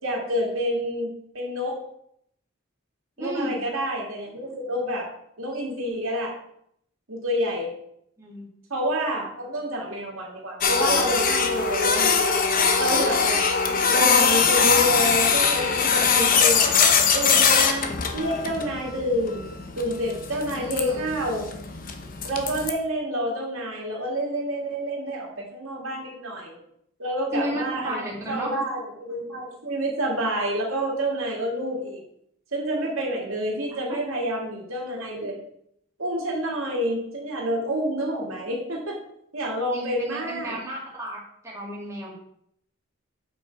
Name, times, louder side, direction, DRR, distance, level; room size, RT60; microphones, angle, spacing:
voice 1, 0.0-1.8 3.2-5.1 5.4-6.3 7.1-7.7 8.7-12.4 12.8-13.4 13.9-16.7 17.1-21.4 22.2-26.6 27.0-32.0 32.5-35.4 36.0-39.0 39.3-40.6, equal, 85° right, -1 dB, 2.3 m, -28 dB
voice 2, 3.2-3.6 8.2-8.4 13.7-13.8 20.3-21.0 27.3-28.5 33.9-34.0 39.7-41.2 41.4-42.1, equal, 15° right, -5 dB, 2.0 m, -33 dB
Printer, 10.6-22.7, left 5 dB, 40° left, 0.8 m, -22 dB
7.5 x 5.9 x 4.6 m, 0.73 s
head